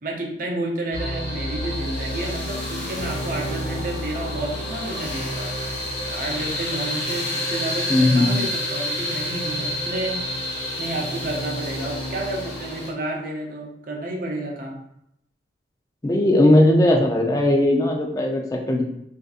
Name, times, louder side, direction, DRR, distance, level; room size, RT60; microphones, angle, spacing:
voice 1, 0.0-5.6 6.1-10.3 10.8-14.8, right 1 dB, 50° right, -1 dB, 0.6 m, -30 dB
sound 1, 0.9-12.9, left 1 dB, 55° left, 1.0 m, -29 dB
voice 2, 7.9-8.4 16.0-18.8, left 1 dB, 20° left, 1 dB, 0.4 m, -18 dB
3.8 x 2.6 x 2.4 m, 0.77 s
head